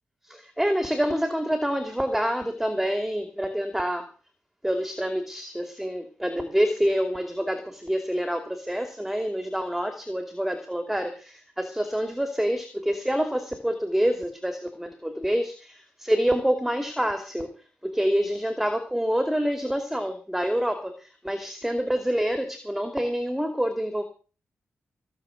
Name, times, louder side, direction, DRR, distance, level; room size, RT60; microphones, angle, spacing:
voice 1, 0.2-4.0 4.6-17.5 17.8-24.0, equal, 5° right, 6 dB, 2.6 m, -27 dB
17.5 x 7.0 x 8.1 m, 0.37 s
wide cardioid pair, 100°, 4 cm